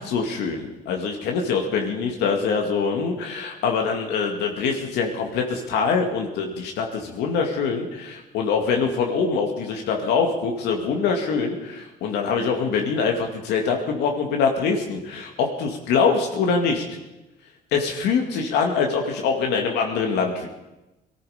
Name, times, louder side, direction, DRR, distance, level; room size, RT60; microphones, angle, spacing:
voice 1, 0.0-16.8 17.7-20.5, left 5 dB, 85° left, 2 dB, 2.2 m, -24 dB
19.0 x 14.0 x 5.1 m, 1.0 s
cardioid pair, 110°, 17 cm